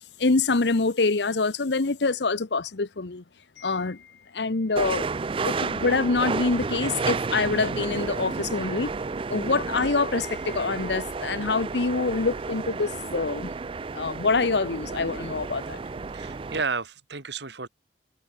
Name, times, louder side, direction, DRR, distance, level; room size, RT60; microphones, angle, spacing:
voice 1, 0.2-3.2 3.6-4.1 4.3-5.0 5.4-8.9 9.3-13.5 13.9-15.8, left 3 dB, 65° left, 0.9 m, -25 dB
sound 1, 4.8-16.6, right 4 dB, 30° right, 0.4 m, -31 dB
voice 2, 15.9-17.7, right 4 dB, 70° right, 2.1 m, -32 dB
head